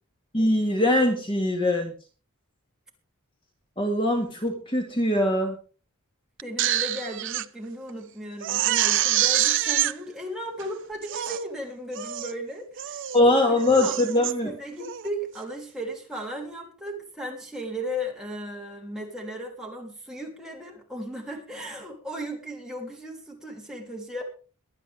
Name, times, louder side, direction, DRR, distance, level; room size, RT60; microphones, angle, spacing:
voice 1, 0.3-1.9 3.8-5.5 13.1-14.5, left 1 dB, 25° left, 2 dB, 2.0 m, -22 dB
voice 2, 6.4-13.0 13.3-24.2, equal, 5° right, -2 dB, 3.2 m, -36 dB
Crying sobbing, 6.4-7.5 7.9-8.0 8.4-9.9 10.6-10.7 11.0-11.4 11.9-12.3 12.8-13.2 13.6-14.3 14.8-15.1, right 12 dB, 55° right, 0.7 m, -26 dB
23.0 x 8.9 x 3.6 m, 0.36 s
head